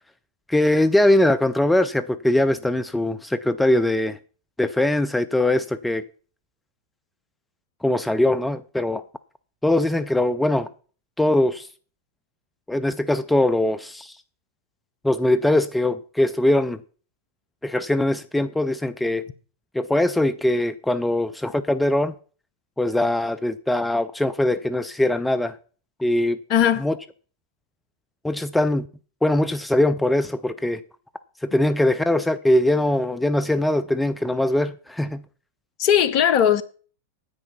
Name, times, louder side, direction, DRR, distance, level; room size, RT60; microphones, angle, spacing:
voice 1, 0.5-4.2 4.6-6.0 7.8-9.0 9.6-10.7 11.2-11.7 12.7-14.2 15.0-16.8 17.6-19.2 19.7-22.1 22.8-25.6 26.0-26.4 26.8-27.0 28.2-28.9 29.2-30.8 31.4-35.2, left 1 dB, 5° left, 0.5 m, -21 dB
voice 2, 26.5-26.9 35.8-36.6, left 9 dB, 40° left, 1.0 m, -18 dB
9.7 x 8.8 x 5.6 m
figure-of-eight pair, 90°, 0 cm